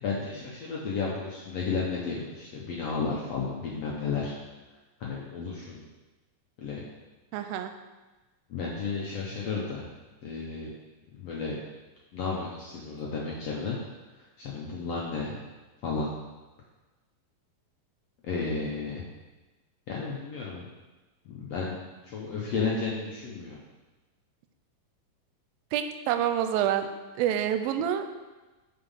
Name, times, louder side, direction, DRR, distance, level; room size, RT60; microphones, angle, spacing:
voice 1, 0.0-4.4 5.0-5.8 6.6-6.8 8.5-9.9 10.2-10.7 11.2-11.6 12.1-13.8 14.4-15.4 15.8-16.1 18.2-19.1 19.9-20.7 21.3-21.8 22.1-23.6, left 4 dB, 70° left, -4 dB, 1.6 m, -32 dB
voice 2, 7.3-7.7 25.7-26.9 27.2-28.1, right 10 dB, 85° right, 8 dB, 2.4 m, -27 dB
7.6 x 5.0 x 5.6 m, 1.2 s
omnidirectional pair, 4.1 m